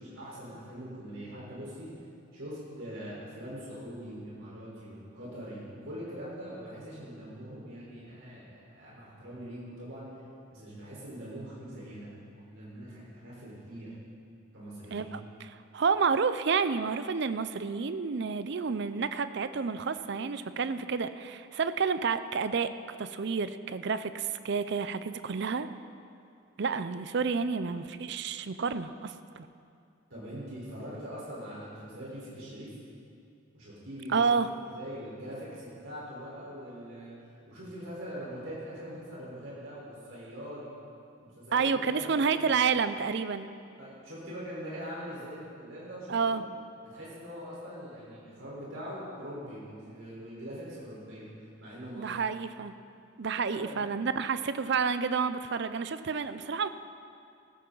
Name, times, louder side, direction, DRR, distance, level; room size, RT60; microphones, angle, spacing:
voice 1, 0.0-1.9 2.3-10.1 10.5-12.1 12.4-13.9 14.5-15.1 30.1-32.7 33.5-34.3 34.8-37.1 37.5-40.7 41.2-42.4 43.8-46.5 46.9-51.3 51.6-52.1 53.5-53.8, equal, 75° right, -7 dB, 4.3 m, -42 dB
voice 2, 14.9-22.7 23.0-25.7 26.6-29.5 34.1-34.5 41.5-43.5 46.1-46.4 52.0-52.7 53.2-56.7, right 5 dB, 55° right, 12 dB, 0.5 m, -30 dB
15.0 x 15.0 x 3.9 m, 2.5 s
head